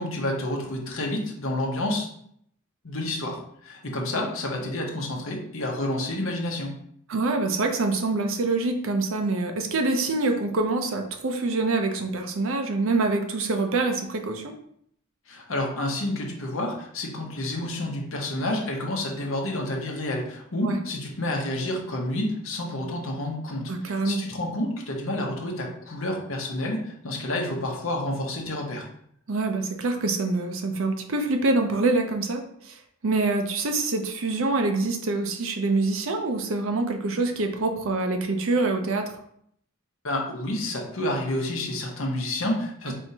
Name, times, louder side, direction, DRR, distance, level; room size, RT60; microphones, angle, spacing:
voice 1, 0.0-2.1 2.8-6.7 15.3-28.9 40.0-42.9, left 1 dB, 70° left, 0 dB, 0.9 m, -29 dB
voice 2, 7.1-14.5 20.6-20.8 23.7-24.2 29.3-39.1 42.9-43.0, right 3 dB, 65° right, 5 dB, 0.6 m, -25 dB
4.4 x 3.4 x 2.8 m, 0.69 s
head